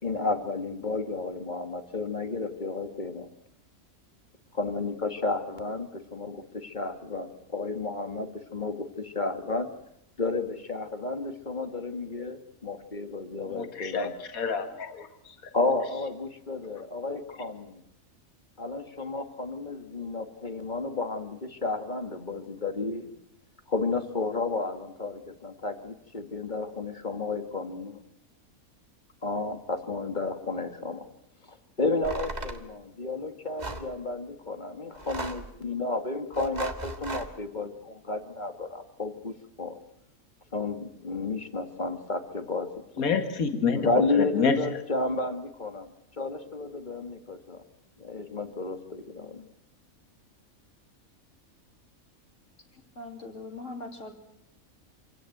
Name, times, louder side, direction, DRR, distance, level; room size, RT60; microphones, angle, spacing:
voice 1, 0.0-3.3 4.5-9.7 10.2-14.1 15.5-17.8 18.6-23.1 23.7-28.0 29.2-31.1 31.5-39.8 40.5-42.7 43.0-43.1 43.7-47.6 48.0-49.4, left 3 dB, 35° left, 8 dB, 1.9 m, -32 dB
voice 2, 13.5-15.4 43.0-43.8 44.2-44.6, left 5 dB, 80° left, 7 dB, 2.2 m, -28 dB
sound 1, 32.0-32.6 33.6-33.9 34.9-35.5 36.3-37.3, right 2 dB, 30° right, 1.9 m, -36 dB
voice 3, 52.7-54.1, left 2 dB, 60° left, 3 dB, 3.8 m, -41 dB
27.0 x 17.0 x 9.2 m, 0.83 s
omnidirectional pair, 1.5 m